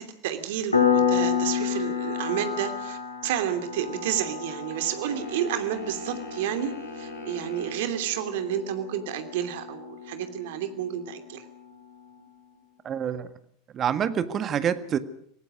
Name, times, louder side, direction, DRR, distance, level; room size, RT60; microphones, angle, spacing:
voice 1, 0.0-11.5, right 10 dB, 60° right, 8 dB, 2.9 m, -30 dB
Piano, 0.7-11.1, left 6 dB, 85° left, 3.7 m, -30 dB
sound 1, 5.1-7.9, left 2 dB, 70° left, 5.8 m, -40 dB
voice 2, 12.8-13.3 13.7-15.0, right 8 dB, 30° right, 11 dB, 1.7 m, -26 dB
26.5 x 18.5 x 6.4 m, 0.67 s
figure-of-eight pair, 80°, 0 cm